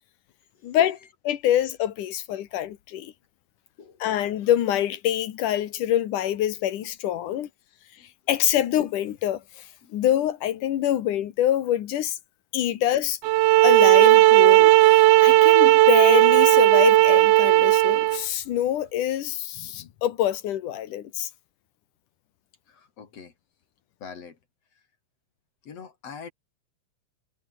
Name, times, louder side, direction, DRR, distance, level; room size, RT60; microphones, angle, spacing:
voice 1, 0.6-1.0 1.2-3.1 4.0-7.5 8.3-9.7 9.9-12.2 12.5-13.2 13.6-21.3, left 11 dB, 80° left, 3.0 m, -25 dB
sound 1, 13.2-18.2, right 17 dB, 85° right, 1.4 m, -15 dB
voice 2, 22.7-23.3 24.0-24.4 25.6-26.3, left 6 dB, 55° left, 3.6 m, -44 dB
omnidirectional pair, 3.6 m